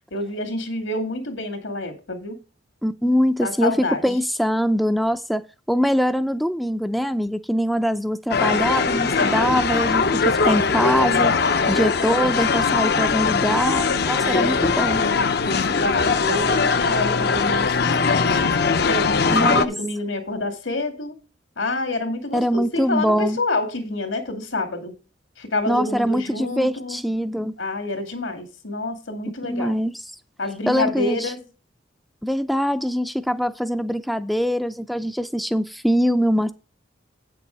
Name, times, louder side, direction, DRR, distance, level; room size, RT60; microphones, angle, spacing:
voice 1, 0.1-2.4 3.4-4.0 14.2-14.7 15.4-18.4 18.8-21.2 21.6-24.9 25.4-27.0 27.6-29.7 30.4-31.4, left 2 dB, 80° left, 2.4 m, -28 dB
voice 2, 2.8-5.4 5.7-11.3 11.7-15.0 19.3-19.7 22.3-23.4 25.7-27.6 29.5-30.0 30.7-31.3 32.2-36.5, equal, ahead, 0.4 m, -23 dB
sound 1, 8.3-19.7, left 5 dB, 55° left, 0.6 m, -20 dB
8.6 x 6.8 x 4.7 m
head